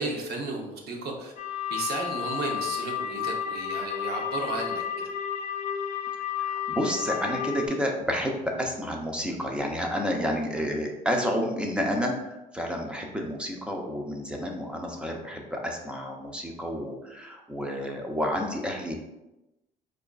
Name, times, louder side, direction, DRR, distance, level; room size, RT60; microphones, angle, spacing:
voice 1, 0.0-1.3 1.7-5.1, right 3 dB, 70° right, 1 dB, 0.8 m, -33 dB
sound 1, 1.4-7.7, left 9 dB, 50° left, 0.5 m, -32 dB
voice 2, 6.4-19.0, equal, 5° right, 1 dB, 0.6 m, -30 dB
4.8 x 2.5 x 2.3 m, 0.97 s
cardioid pair, 110°, 17 cm